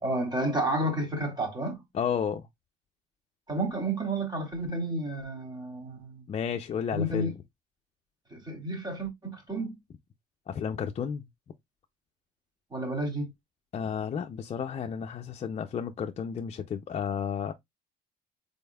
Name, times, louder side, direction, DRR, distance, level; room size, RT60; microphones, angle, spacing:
voice 1, 0.0-1.8 3.5-6.2 6.9-7.3 8.3-9.8 12.7-13.3, right 1 dB, 25° right, 2.6 m, -31 dB
voice 2, 1.9-2.5 6.3-7.3 10.5-11.2 13.7-17.5, left 7 dB, 40° left, 0.5 m, -32 dB
5.2 x 4.2 x 2.3 m
cardioid pair, 110°, 17 cm